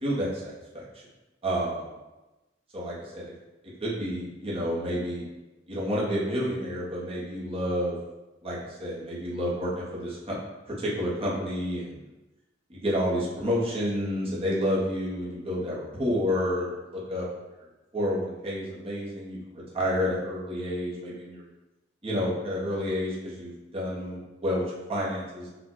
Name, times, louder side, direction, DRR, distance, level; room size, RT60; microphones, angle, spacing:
voice 1, 0.0-0.8 1.4-1.9 2.7-3.2 3.8-5.2 5.7-8.0 8.4-10.4 10.7-12.0 12.7-17.2 17.9-21.4 22.0-25.5, equal, 30° right, -6 dB, 1.1 m, -30 dB
4.8 x 2.6 x 3.9 m, 1.1 s
head